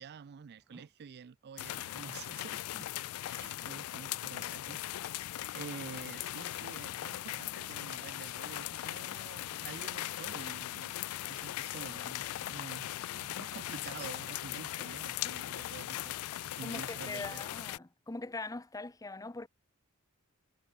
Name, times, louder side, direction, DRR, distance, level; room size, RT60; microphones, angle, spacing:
voice 1, 0.0-5.2 5.5-17.4, right 6 dB, 50° right, 0.4 m, -49 dB
sound 1, 0.6-10.2 10.5-10.9 11.2-11.5 12.1-14.0, equal, 10° right, 2.2 m, -70 dB
sound 2, 1.6-17.8, left 14 dB, 80° left, 0.3 m, -39 dB
voice 2, 16.6-19.5, left 2 dB, 15° left, 0.7 m, -41 dB
head